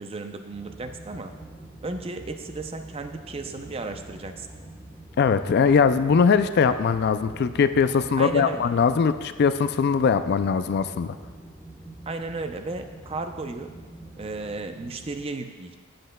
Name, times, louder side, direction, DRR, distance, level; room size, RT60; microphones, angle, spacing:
voice 1, 0.0-1.3 1.8-4.5 8.2-8.7 12.1-13.8 14.2-15.8, right 3 dB, 30° right, 7 dB, 0.5 m, -34 dB
sound 1, 0.5-15.2, right 1 dB, 10° right, 1.0 m, -45 dB
voice 2, 5.2-11.1, left 6 dB, 50° left, 11 dB, 0.3 m, -21 dB
15.5 x 7.8 x 2.2 m, 1.5 s
head